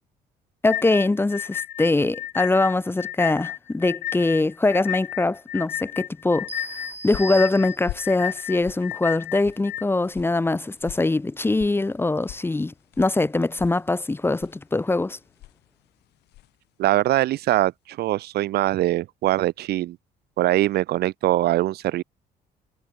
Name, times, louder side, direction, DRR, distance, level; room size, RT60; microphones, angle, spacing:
voice 1, 0.6-6.5 7.0-15.2, left 2 dB, 15° left, 1.6 m, -23 dB
sound 1, 0.7-9.8, left 12 dB, 60° left, 1.8 m, -32 dB
sound 2, 6.5-8.2, right 2 dB, 10° right, 3.3 m, -38 dB
sound 3, 6.6-16.7, left 16 dB, 80° left, 5.7 m, -44 dB
voice 2, 16.8-20.0 20.4-22.0, right 15 dB, 70° right, 1.1 m, -22 dB
cardioid pair, 110°, 17 cm